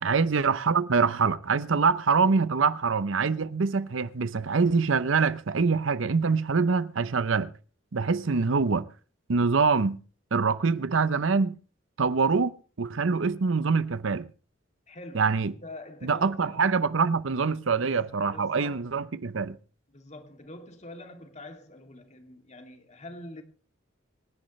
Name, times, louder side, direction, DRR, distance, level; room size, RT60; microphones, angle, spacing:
voice 1, 0.0-7.5 7.9-8.9 9.3-10.0 10.3-11.5 12.0-14.3 15.1-15.5 16.0-19.6, right 5 dB, 70° right, 0.7 m, -25 dB
voice 2, 14.9-16.6 17.8-18.8 19.9-23.4, left 1 dB, 35° left, 2.6 m, -45 dB
26.0 x 10.5 x 3.2 m
head